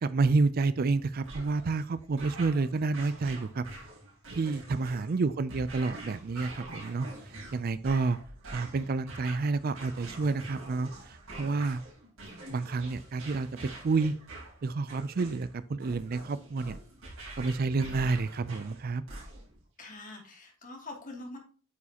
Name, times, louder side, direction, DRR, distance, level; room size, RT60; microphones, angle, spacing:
voice 1, 0.0-3.6 4.3-7.1 7.5-8.2 8.5-11.8 12.5-13.5 13.8-14.1 14.6-16.8 17.4-19.0, right 3 dB, 45° right, 0.4 m, -29 dB
sound 1, 1.2-19.6, right 2 dB, 70° right, 3.8 m, -46 dB
voice 2, 19.8-21.4, left 2 dB, 40° left, 2.6 m, -44 dB
8.4 x 7.0 x 2.9 m
head